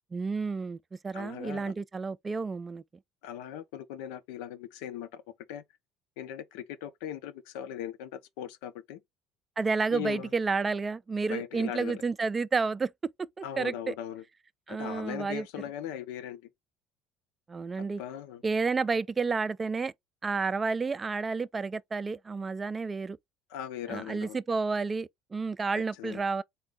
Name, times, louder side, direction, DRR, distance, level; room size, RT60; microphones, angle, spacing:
voice 1, 0.1-0.8 1.0-2.8 9.6-12.9 13.2-13.9 14.7-15.5 17.5-18.0 18.4-19.9 20.2-23.2 23.9-26.4, right 4 dB, 20° right, 0.3 m, -30 dB
voice 2, 1.1-1.7 3.2-5.2 5.5-5.6 6.2-9.0 9.9-10.3 11.3-12.0 13.4-14.2 14.7-16.5 18.0-18.4 23.5-24.4 26.0-26.2, left 10 dB, 90° left, 0.6 m, -39 dB
4.2 x 2.2 x 3.6 m
cardioid pair, 120°, 0 cm